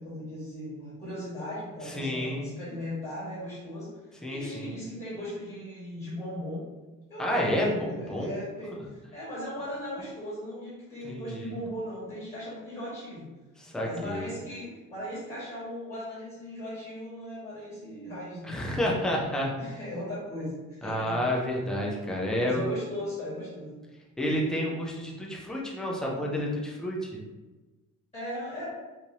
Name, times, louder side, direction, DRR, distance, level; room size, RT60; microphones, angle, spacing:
voice 1, 0.0-3.9 4.3-6.6 7.1-13.3 13.8-18.9 19.6-21.1 22.4-23.8 28.1-28.7, left 1 dB, 20° left, -10 dB, 1.5 m, -38 dB
voice 2, 1.9-2.5 4.2-4.7 7.2-8.4 11.0-11.5 13.6-14.3 18.4-19.5 20.8-22.7 24.2-27.2, equal, ahead, -3 dB, 0.4 m, -30 dB
4.6 x 2.6 x 2.7 m, 1.2 s
cardioid pair, 180°, 33 cm